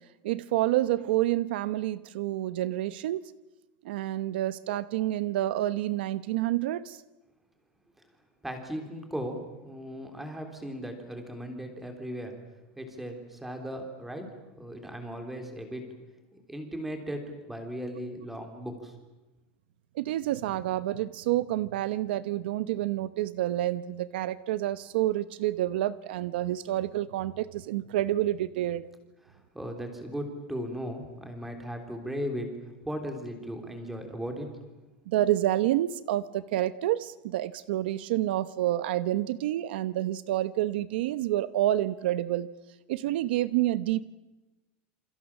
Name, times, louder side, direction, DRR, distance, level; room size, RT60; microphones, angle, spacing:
voice 1, 0.2-3.2 3.8-7.0 19.9-28.9 35.1-42.5 42.9-44.1, right 14 dB, 65° right, 15 dB, 0.9 m, -28 dB
voice 2, 8.4-12.4 12.8-15.9 16.5-18.9 29.2-32.5 32.8-34.6, equal, 5° right, 5 dB, 3.5 m, -37 dB
28.5 x 27.5 x 7.3 m, 1.1 s
supercardioid pair, 180°, 6 cm